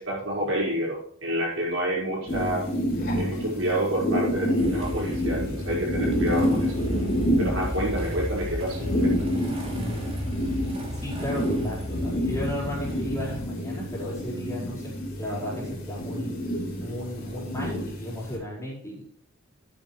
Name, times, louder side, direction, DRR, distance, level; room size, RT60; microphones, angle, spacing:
voice 1, 0.0-2.7 3.1-6.8 7.4-9.3, equal, 70° right, -4 dB, 4.9 m, -29 dB
sound 1, 2.3-18.4, equal, 50° left, 4.2 m, -29 dB
Motorcycle / Engine starting, 4.6-13.4, equal, 30° right, 3.1 m, -34 dB
voice 2, 10.9-16.3 16.8-19.1, left 1 dB, 15° left, -6 dB, 4.5 m, -34 dB
12.5 x 8.9 x 3.3 m, 0.64 s
head